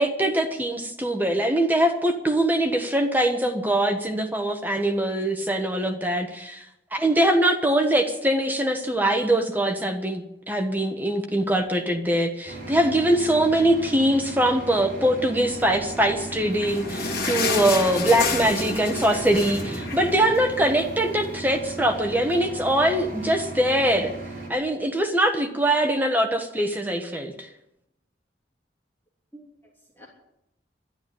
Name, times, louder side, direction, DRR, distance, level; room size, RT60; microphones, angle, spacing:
voice 1, 0.0-6.6 6.9-24.1 24.5-27.5, right 1 dB, 10° right, 4 dB, 1.2 m, -22 dB
sound 1, 12.4-24.5, right 2 dB, 45° right, 5.2 m, -37 dB
sound 2, 16.2-20.9 21.3-21.4 21.6-21.8 22.5-22.6, left 3 dB, 55° left, 2.8 m, -30 dB
voice 2, 29.3-30.1, equal, 10° left, -3 dB, 3.1 m, -43 dB
12.0 x 11.5 x 9.9 m, 0.83 s
head